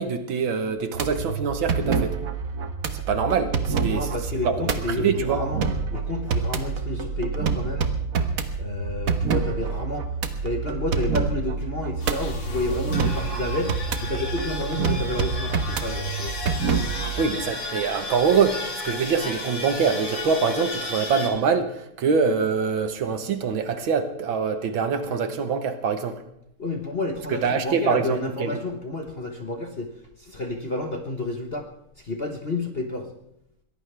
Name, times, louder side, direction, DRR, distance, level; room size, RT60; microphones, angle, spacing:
voice 1, 0.0-2.2 2.9-4.1 4.4-5.4 17.2-26.2 27.3-28.6, right 5 dB, 65° right, 9 dB, 2.0 m, -24 dB
sound 1, 0.9-17.2, right 5 dB, 45° right, 1.4 m, -27 dB
voice 2, 3.8-5.6 5.9-7.9 8.6-10.1 10.4-16.3 26.6-29.9 30.2-31.7 32.0-33.1, left 2 dB, 35° left, 4 dB, 1.1 m, -30 dB
sound 2, 12.0-21.3, left 2 dB, 60° left, 3.1 m, -33 dB
22.5 x 17.0 x 3.4 m, 0.79 s
omnidirectional pair, 2.4 m